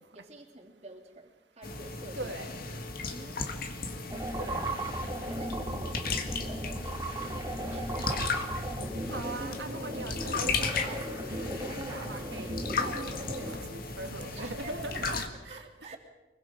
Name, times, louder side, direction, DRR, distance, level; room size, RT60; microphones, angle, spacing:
voice 1, 0.1-2.3 2.7-3.7 4.1-4.6 5.2-8.5 8.8-9.0 9.9-10.0 14.3-14.9 15.3-16.0, right 2 dB, 40° right, 1 dB, 3.3 m, -49 dB
sound 1, 1.6-15.3, left 4 dB, 55° left, 1.9 m, -36 dB
voice 2, 2.1-2.7 4.4-4.9 9.1-16.0, right 2 dB, 90° right, 6 dB, 2.2 m, -41 dB
sound 2, 4.1-13.6, right 1 dB, 20° right, 2.7 m, -37 dB
25.0 x 22.5 x 5.4 m, 1.1 s
head